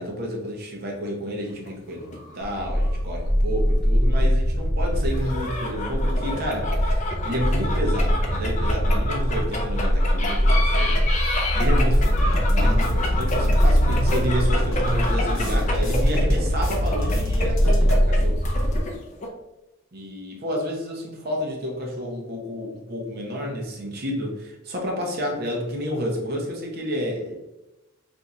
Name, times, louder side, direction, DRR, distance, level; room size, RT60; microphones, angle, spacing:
voice 1, 0.0-18.4 19.9-27.3, equal, 45° right, 0 dB, 0.7 m, -30 dB
sound 1, 1.5-3.0 3.3-3.4 5.0-19.3, left 1 dB, 35° left, 0.5 m, -30 dB
sound 2, 2.4-18.8, equal, 10° left, 1.0 m, -22 dB
sound 3, 11.6-18.0, equal, 65° left, 0.9 m, -27 dB
2.6 x 2.4 x 4.1 m, 0.98 s
head